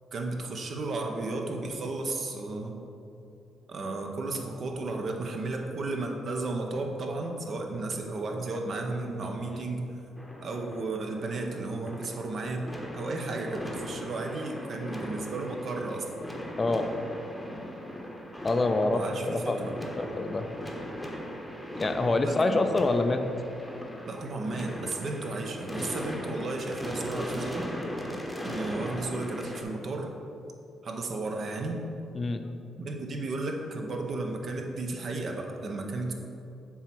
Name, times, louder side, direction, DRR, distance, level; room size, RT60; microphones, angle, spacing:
voice 1, 0.1-2.7 3.7-9.9 10.4-16.0 18.8-19.9 22.2-22.6 24.1-27.7 28.4-30.1 30.8-31.8 32.8-36.1, right 2 dB, 55° right, 2 dB, 0.8 m, -34 dB
sound 1, 10.2-29.6, equal, ahead, 0.9 m, -39 dB
voice 2, 18.4-19.0 19.3-20.5 21.8-23.3 32.1-32.4, left 2 dB, 30° left, 7 dB, 0.4 m, -26 dB
7.3 x 3.1 x 6.0 m, 2.7 s
cardioid pair, 90°, 0 cm